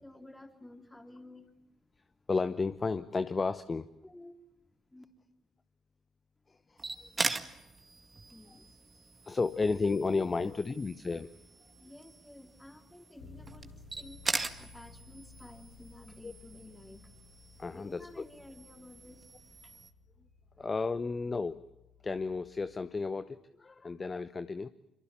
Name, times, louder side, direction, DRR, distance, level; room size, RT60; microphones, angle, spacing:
voice 1, 0.0-1.5 4.0-4.4 4.9-5.0 8.3-8.7 9.6-9.7 10.4-10.7 11.8-17.1 17.7-19.3 19.6-19.7, left 1 dB, 10° left, 4 dB, 3.6 m, -53 dB
voice 2, 2.3-3.9 6.7-7.1 9.2-11.3 16.2-16.3 17.6-18.2 20.6-21.6 22.0-24.7, left 4 dB, 25° left, 13 dB, 0.9 m, -33 dB
sound 1, 6.8-19.9, right 3 dB, 25° right, 2.0 m, -41 dB
Bass guitar, 13.2-23.0, left 4 dB, 75° left, 5.8 m, -57 dB
27.5 x 24.0 x 7.3 m, 0.93 s
figure-of-eight pair, 50°, 0 cm